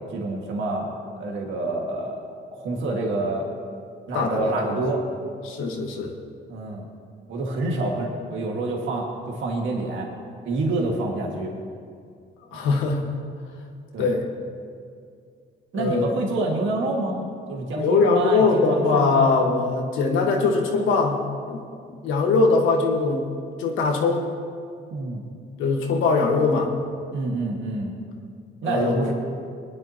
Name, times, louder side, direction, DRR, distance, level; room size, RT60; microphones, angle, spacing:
voice 1, 0.1-0.9 1.2-2.2 2.5-3.5 4.1-5.0 6.5-6.8 7.3-10.1 10.4-11.5 13.9-14.1 15.7-19.4 24.9-25.3 27.1-27.9 28.6-29.1, right 2 dB, 75° right, -1 dB, 1.9 m, -27 dB
voice 2, 4.1-4.7 5.4-6.1 12.5-13.0 14.0-14.2 15.7-16.2 17.7-21.2 21.5-21.6 21.9-23.3 23.6-24.3 25.6-26.7 28.6-29.1, left 4 dB, 90° left, 2 dB, 1.4 m, -21 dB
20.5 x 10.0 x 2.9 m, 2.2 s
cardioid pair, 90°, 20 cm